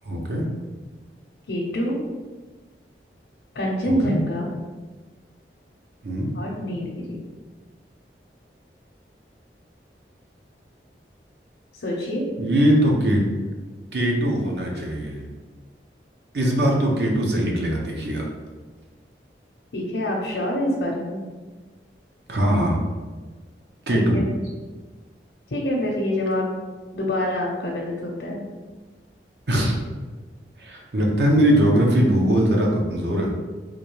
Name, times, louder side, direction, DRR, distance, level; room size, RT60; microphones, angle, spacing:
voice 1, 0.1-0.4 3.9-4.1 6.0-6.3 12.4-13.2 13.9-15.2 16.3-18.3 22.3-22.8 23.9-24.2 29.5-29.8 30.6-33.3, right 1 dB, 70° right, -1 dB, 0.7 m, -21 dB
voice 2, 1.5-2.0 3.5-4.5 6.3-7.2 11.7-12.3 19.7-21.2 23.9-24.2 25.5-26.5 26.9-28.4, left 1 dB, 85° left, -3 dB, 0.6 m, -26 dB
3.7 x 2.7 x 3.1 m, 1.3 s
head